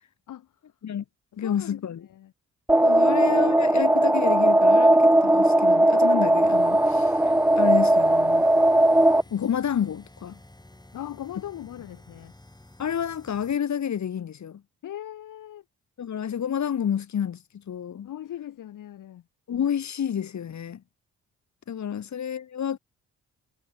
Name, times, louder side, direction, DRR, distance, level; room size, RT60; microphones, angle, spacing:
voice 1, 0.3-0.6 1.3-1.8 2.1-2.3 10.9-12.3 14.8-15.6 18.0-19.3 21.9-22.1, left 11 dB, 80° left, 4.2 m, -40 dB
voice 2, 1.4-2.0 2.8-7.1 7.6-8.5 9.3-10.4 12.8-14.6 16.0-17.4 17.7-18.1 19.5-20.8 21.7-22.8, left 8 dB, 60° left, 2.0 m, -29 dB
sound 1, 2.7-9.2, right 1 dB, 5° right, 0.9 m, -18 dB
sound 2, 6.4-13.6, left 1 dB, 15° left, 5.6 m, -51 dB
supercardioid pair, 55°, 31 cm